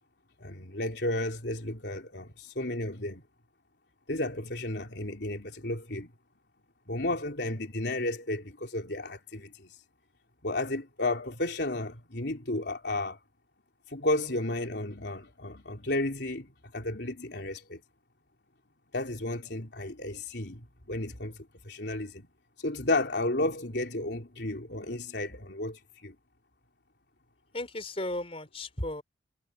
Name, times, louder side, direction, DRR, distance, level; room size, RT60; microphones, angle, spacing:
voice 1, 0.4-3.2 4.1-6.1 6.9-9.7 10.4-13.2 13.9-17.8 18.9-22.3 22.6-26.2, left 2 dB, 65° left, 3.6 m, -33 dB
voice 2, 27.5-29.0, left 1 dB, 35° left, 3.9 m, -35 dB
head